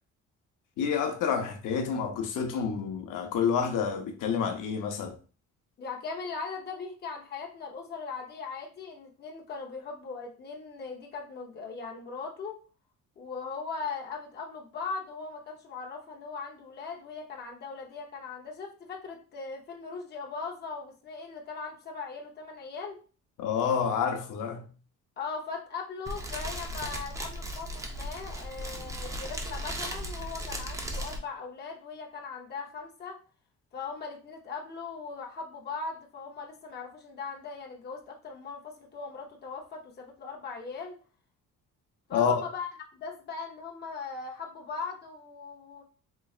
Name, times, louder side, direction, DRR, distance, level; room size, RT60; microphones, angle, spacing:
voice 1, 0.8-5.1 23.4-24.7 42.1-42.4, left 7 dB, 75° left, 0.7 m, -28 dB
voice 2, 5.8-12.6 13.2-23.0 25.2-33.2 33.7-41.0 42.1-45.8, left 4 dB, 30° left, 0.7 m, -39 dB
Fire, 26.1-31.2, right 1 dB, 10° right, 0.4 m, -36 dB
4.0 x 3.1 x 2.4 m
cardioid pair, 170°, 32 cm